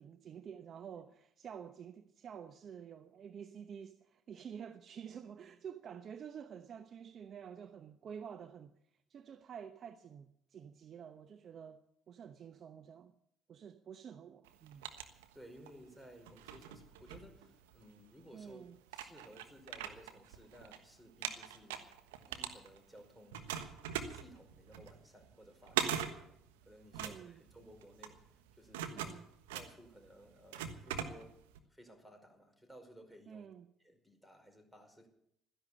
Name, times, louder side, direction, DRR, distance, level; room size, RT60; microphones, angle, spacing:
voice 1, 0.0-8.7 9.1-13.1 13.5-14.9 18.3-18.8 26.9-27.4 28.9-29.3 33.3-33.7, right 8 dB, 50° right, 0.9 m, -49 dB
sound 1, 14.4-15.8 16.2-17.9 18.5-18.6 18.9-20.8 21.1-23.0 23.3-31.6, right 9 dB, 80° right, 1.3 m, -41 dB
voice 2, 15.3-22.0 22.3-23.5 24.1-26.3 26.6-28.9 29.5-31.4 31.7-33.5 33.8-35.1, equal, 5° right, 5.1 m, -58 dB
14.0 x 10.5 x 8.5 m
hypercardioid pair, 55°, 0 cm